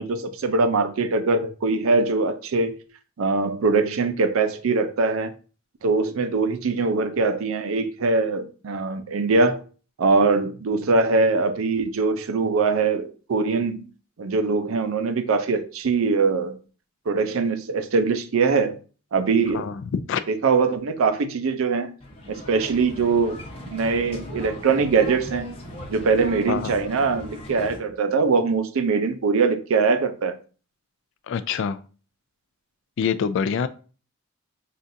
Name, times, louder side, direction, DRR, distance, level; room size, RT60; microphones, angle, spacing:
voice 1, 0.0-2.8 3.2-5.3 5.8-9.6 10.0-13.9 14.2-16.6 17.1-18.8 19.1-19.7 20.3-21.9 22.3-23.4 23.7-25.6 25.9-30.3, right 4 dB, 75° right, 0.5 m, -22 dB
voice 2, 19.5-20.2 26.5-26.7 31.3-31.8 33.0-33.7, left 6 dB, 60° left, 0.3 m, -25 dB
sound 1, 22.0-27.8, left 1 dB, 30° left, 0.8 m, -38 dB
5.5 x 2.5 x 2.6 m
head